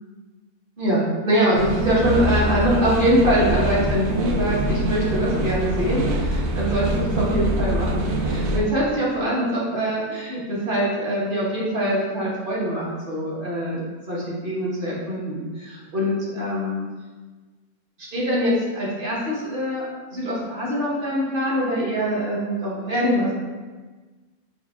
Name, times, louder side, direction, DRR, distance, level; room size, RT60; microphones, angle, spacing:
voice 1, 0.8-16.8 18.0-23.3, equal, 40° right, -7 dB, 1.2 m, -23 dB
sound 1, 1.5-8.6, right 1 dB, 90° right, 1.2 m, -24 dB
5.1 x 2.4 x 3.4 m, 1.3 s
omnidirectional pair, 1.5 m